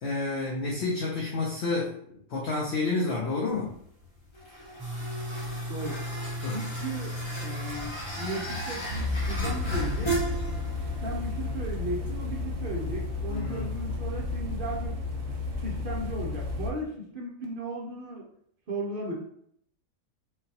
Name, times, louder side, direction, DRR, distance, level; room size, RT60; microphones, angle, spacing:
voice 1, 0.0-1.9 2.3-3.8 6.4-6.6 13.3-13.7, left 3 dB, 60° left, -3 dB, 0.8 m, -29 dB
sound 1, 3.5-16.8, right 1 dB, 30° left, 0.5 m, -38 dB
sound 2, 4.8-13.9, equal, 15° right, 1.2 m, -37 dB
voice 2, 6.5-7.1 7.4-10.2 11.0-15.0 15.6-18.3 18.7-19.1, right 1 dB, 55° right, -2 dB, 0.6 m, -36 dB
sound 3, 8.9-16.7, left 3 dB, 70° right, 1.0 m, -33 dB
3.8 x 2.2 x 2.7 m, 0.67 s
omnidirectional pair, 1.5 m